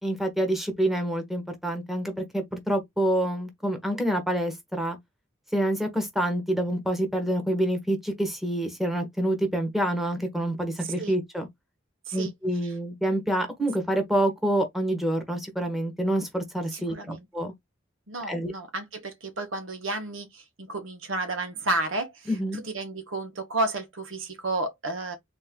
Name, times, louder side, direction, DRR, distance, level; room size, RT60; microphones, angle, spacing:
voice 1, 0.0-5.0 5.5-11.5 12.1-17.5 18.3-18.5 22.3-22.6, right 1 dB, ahead, 1.3 m, -27 dB
voice 2, 16.7-17.2 18.1-25.2, right 2 dB, 80° right, 1.4 m, -32 dB
4.3 x 2.8 x 3.7 m
head